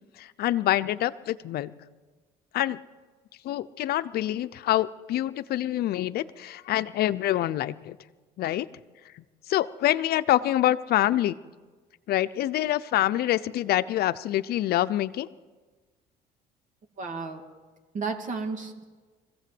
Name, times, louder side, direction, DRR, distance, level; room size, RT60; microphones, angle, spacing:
voice 1, 0.2-1.7 2.5-2.8 3.4-8.0 8.4-8.7 9.2-11.4 12.1-15.3, left 13 dB, 65° left, 14 dB, 0.7 m, -26 dB
voice 2, 17.0-17.4 17.9-18.8, right 4 dB, 50° right, 4 dB, 2.4 m, -32 dB
22.0 x 15.5 x 7.8 m, 1.4 s
cardioid pair, 110°, 17 cm